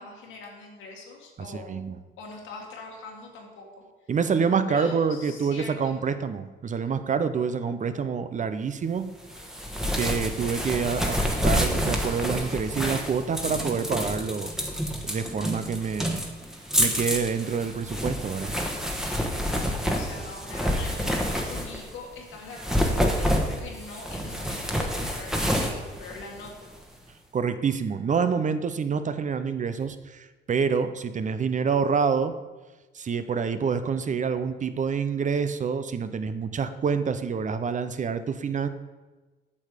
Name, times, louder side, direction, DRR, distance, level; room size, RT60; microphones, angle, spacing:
voice 1, 0.0-1.9 2.2-3.7 4.0-4.1 4.4-6.0 19.4-26.7, left 3 dB, 90° left, 0 dB, 2.0 m, -43 dB
voice 2, 1.5-2.0 4.1-9.1 10.0-14.5 15.0-16.2 16.8-18.5 27.3-32.3 32.9-38.7, right 6 dB, 40° right, 11 dB, 0.6 m, -27 dB
sound 1, 9.3-21.9 22.5-26.8, equal, ahead, 1.3 m, -28 dB
8.4 x 6.6 x 5.0 m, 1.2 s
cardioid pair, 90°, 20 cm